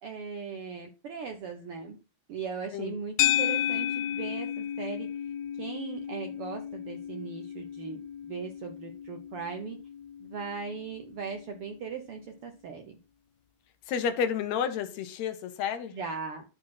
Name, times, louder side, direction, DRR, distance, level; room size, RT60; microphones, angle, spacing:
voice 1, 0.0-2.0 2.3-5.1 5.6-9.8 10.2-13.0 15.9-16.4, right 5 dB, 75° right, 1.3 m, -38 dB
sound 1, 3.2-11.6, left 12 dB, 85° left, 2.3 m, -33 dB
voice 2, 13.9-15.9, left 7 dB, 65° left, 2.0 m, -30 dB
11.5 x 4.2 x 5.8 m
omnidirectional pair, 4.0 m